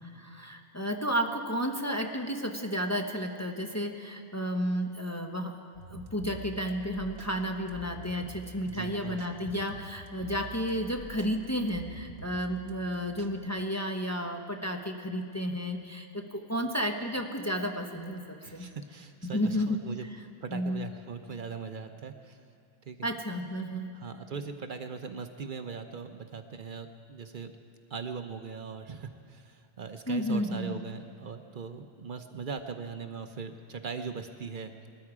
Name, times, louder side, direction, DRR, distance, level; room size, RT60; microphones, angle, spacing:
voice 1, 0.2-18.7 19.2-19.8 20.5-20.8 23.0-23.9 30.1-30.7, equal, 15° left, 3 dB, 0.9 m, -32 dB
sound 1, 5.7-13.5, right 3 dB, 85° right, 1.4 m, -47 dB
voice 2, 8.6-9.2 18.4-20.1 20.4-22.4 22.9-23.1 23.9-27.5 27.9-34.9, right 5 dB, 55° right, 7 dB, 0.8 m, -40 dB
21.0 x 13.5 x 4.8 m, 2.7 s
omnidirectional pair, 1.0 m